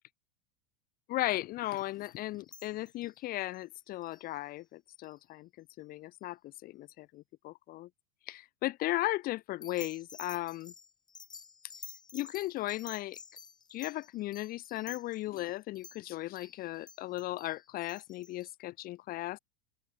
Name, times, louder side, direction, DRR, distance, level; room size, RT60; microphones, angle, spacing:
voice 1, 1.1-5.5 5.8-7.9 8.3-10.7 12.1-13.2 13.7-19.4, left 17 dB, 45° left, 1.3 m, -36 dB
sound 1, 1.6-3.2 3.5-3.6 4.0-4.3 5.0-5.2 9.6-18.5, left 5 dB, 20° left, 1.6 m, -52 dB
open air
hypercardioid pair, 90°, 21 cm